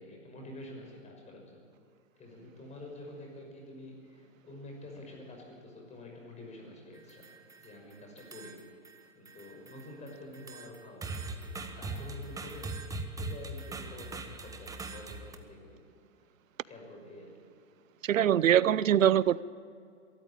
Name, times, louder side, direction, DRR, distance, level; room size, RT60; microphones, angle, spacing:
voice 1, 0.0-1.6 2.2-7.3 7.6-8.6 9.1-12.8 13.2-15.8 16.6-17.5, left 1 dB, 15° left, 1 dB, 6.0 m, -48 dB
sound 1, 7.0-7.8 8.2-9.0 9.3-15.4, right 3 dB, 10° right, 1.2 m, -41 dB
voice 2, 18.0-19.4, right 10 dB, 90° right, 20 dB, 0.7 m, -23 dB
23.0 x 13.5 x 8.9 m, 2.4 s
hypercardioid pair, 135°, 38 cm